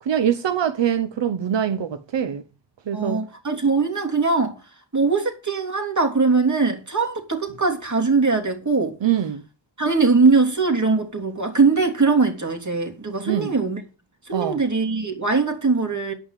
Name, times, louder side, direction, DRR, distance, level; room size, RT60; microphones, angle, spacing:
voice 1, 0.0-2.4 2.9-3.2 9.0-9.4 13.3-13.5 14.3-14.6, right 9 dB, 85° right, 0.8 m, -23 dB
voice 2, 2.9-4.6 4.9-9.0 9.8-13.8 14.2-16.1, right 4 dB, 40° right, 3.2 m, -21 dB
9.3 x 5.7 x 8.3 m
cardioid pair, 45°, 43 cm